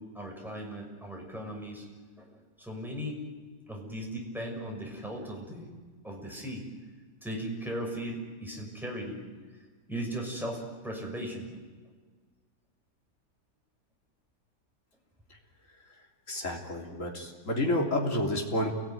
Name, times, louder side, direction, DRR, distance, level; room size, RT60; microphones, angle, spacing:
voice 1, 0.0-1.8 2.2-3.2 3.7-5.7 6.0-6.7 7.2-9.2 9.9-11.6, equal, ahead, -1 dB, 6.4 m, -37 dB
voice 2, 16.3-18.7, left 1 dB, 45° left, 0 dB, 3.7 m, -30 dB
29.0 x 18.5 x 9.5 m, 1.4 s
omnidirectional pair, 1.8 m